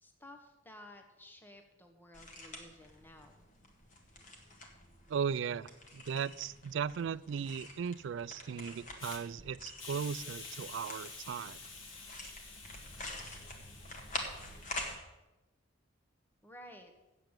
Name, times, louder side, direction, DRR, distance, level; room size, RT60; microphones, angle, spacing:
voice 1, 0.0-3.5 16.4-16.9, left 1 dB, 10° left, 4 dB, 1.0 m, -54 dB
sound 1, 2.1-15.0, left 2 dB, 40° left, 1.6 m, -47 dB
voice 2, 5.1-11.6, right 7 dB, 70° right, 18 dB, 0.3 m, -37 dB
Hiss, 9.0-9.2 9.8-14.9, left 4 dB, 85° left, 1.8 m, -49 dB
8.0 x 7.7 x 8.8 m, 1.0 s
head